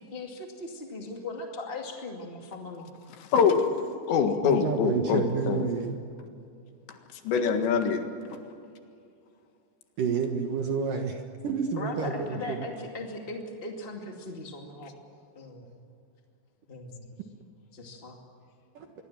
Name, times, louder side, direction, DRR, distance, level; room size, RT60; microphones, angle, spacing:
voice 1, 0.1-2.9 11.8-14.9 15.3-15.6 16.7-17.1 17.7-18.2, left 2 dB, 35° left, 1 dB, 0.8 m, -39 dB
voice 2, 3.2-5.6 6.9-8.4, left 6 dB, 70° left, 6 dB, 3.8 m, -25 dB
voice 3, 4.4-6.0 10.0-12.6 18.7-18.9, right 5 dB, 60° right, 4 dB, 2.4 m, -29 dB
25.5 x 22.5 x 7.5 m, 2.5 s
omnidirectional pair, 5.4 m